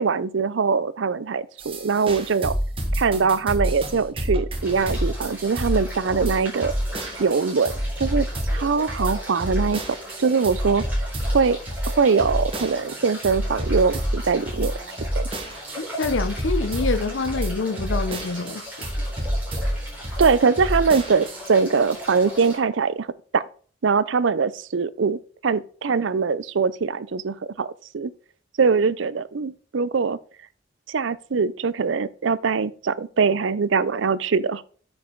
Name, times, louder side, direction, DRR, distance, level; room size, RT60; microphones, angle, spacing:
voice 1, 0.0-2.6 2.9-6.7 7.2-7.7 8.0-8.3 8.5-9.8 10.2-10.8 11.3-11.6 11.9-14.7 15.2-15.3 20.2-23.1 23.3-23.4 23.8-27.7 27.9-28.1 28.6-30.2 30.9-34.6, right 5 dB, 80° right, 0.5 m, -22 dB
sound 1, 1.6-21.4, equal, 30° right, 1.5 m, -28 dB
sound 2, 4.6-22.6, equal, 10° right, 4.1 m, -38 dB
voice 2, 15.8-18.7, left 3 dB, 80° left, 0.7 m, -26 dB
9.1 x 5.3 x 4.5 m
head